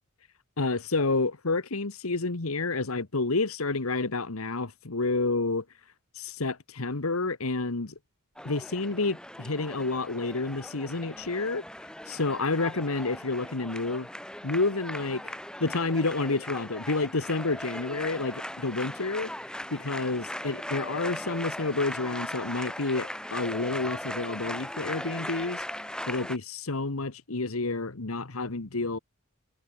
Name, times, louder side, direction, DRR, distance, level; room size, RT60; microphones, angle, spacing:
voice 1, 0.6-5.6 6.1-7.9 8.4-11.6 12.1-14.1 14.4-15.3 15.6-19.3 19.7-25.6 26.1-29.0, left 3 dB, 90° left, 1.5 m, -29 dB
sound 1, 8.4-26.4, left 1 dB, 5° left, 4.2 m, -38 dB
head